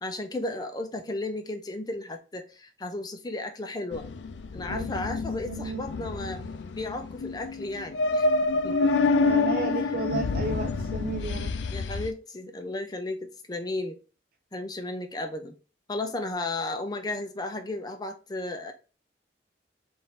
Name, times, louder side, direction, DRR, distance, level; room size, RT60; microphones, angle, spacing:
voice 1, 0.0-4.0 4.5-6.4 6.7-8.3 8.6-8.9 9.7-9.8 11.7-14.0 14.5-15.5 15.9-18.7, left 2 dB, 20° left, 6 dB, 0.5 m, -34 dB
sound 1, 3.9-12.1, left 3 dB, 85° left, 0.4 m, -27 dB
voice 2, 5.4-5.8 8.7-11.5, right 4 dB, 55° right, 5 dB, 0.4 m, -34 dB
3.8 x 2.6 x 4.1 m, 0.34 s
head